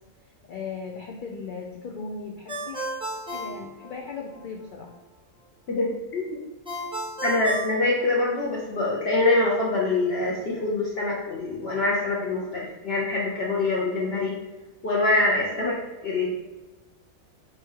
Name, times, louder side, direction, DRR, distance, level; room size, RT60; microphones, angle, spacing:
voice 1, 0.5-2.8 3.3-4.9, left 4 dB, 80° left, 1 dB, 0.4 m, -37 dB
Ringtone, 2.5-4.4 6.7-8.6, right 1 dB, 5° right, 0.5 m, -34 dB
voice 2, 5.7-6.3 7.2-14.3 14.8-16.3, left 2 dB, 55° left, -4 dB, 0.9 m, -24 dB
3.4 x 3.3 x 4.4 m, 1.1 s
omnidirectional pair, 1.4 m